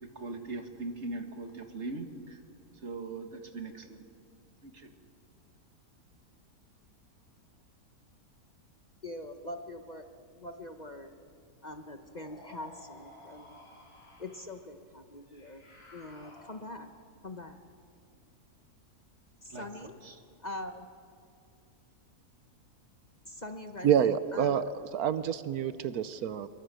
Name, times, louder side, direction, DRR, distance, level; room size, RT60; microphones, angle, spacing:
voice 1, 0.0-2.4 2.8-4.0 4.6-4.9 19.5-19.6 20.0-20.2, right 3 dB, 50° right, 5 dB, 2.1 m, -40 dB
voice 2, 9.0-10.0 10.4-11.1 11.6-13.6 14.2-15.6 15.9-16.9 17.2-17.6 19.4-20.0 20.4-20.9 23.2-24.6 25.4-25.5, left 1 dB, 30° left, 6 dB, 1.1 m, -43 dB
sound 1, 12.2-14.6 15.3-16.9, left 1 dB, 75° left, 5.8 m, -54 dB
voice 3, 23.8-24.6 24.9-26.5, right 8 dB, 75° right, 13 dB, 1.2 m, -27 dB
24.0 x 23.0 x 7.7 m, 2.4 s
omnidirectional pair, 1.6 m